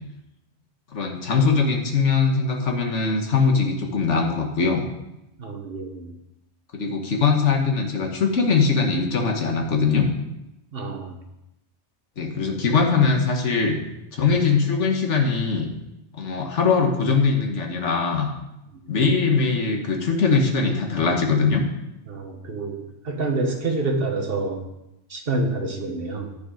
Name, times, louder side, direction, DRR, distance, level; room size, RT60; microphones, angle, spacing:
voice 1, 0.9-4.9 6.7-10.1 12.2-13.8 14.1-15.7 16.1-18.3 18.9-21.6, left 5 dB, 90° left, 3 dB, 1.6 m, -21 dB
voice 2, 5.4-6.1 10.7-11.2 22.1-24.7 25.1-26.3, right 2 dB, 55° right, 3 dB, 1.5 m, -27 dB
10.0 x 6.8 x 5.0 m, 0.91 s
omnidirectional pair, 1.2 m